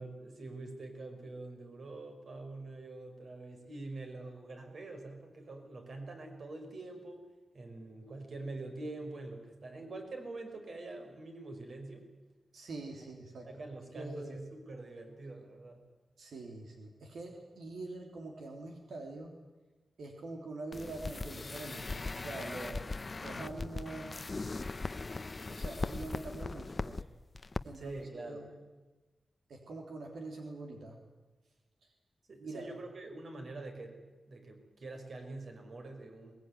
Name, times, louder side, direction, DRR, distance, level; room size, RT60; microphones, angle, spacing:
voice 1, 0.0-7.2 7.5-12.1 13.5-15.8 27.7-28.5 32.3-34.0 34.3-36.3, right 2 dB, 55° right, 4 dB, 5.1 m, -45 dB
voice 2, 12.5-13.5 13.9-14.4 16.2-19.4 20.0-22.9 23.2-24.2 25.2-27.1 27.6-28.5 29.5-31.0 31.8-31.9 32.4-32.7, right 2 dB, 90° right, 2 dB, 3.5 m, -44 dB
sound 1, 20.7-27.0 27.3-27.6 27.9-28.0, left 3 dB, 30° left, 0.7 m, -39 dB
22.0 x 21.0 x 9.5 m, 1.2 s
wide cardioid pair, 125°, 0 cm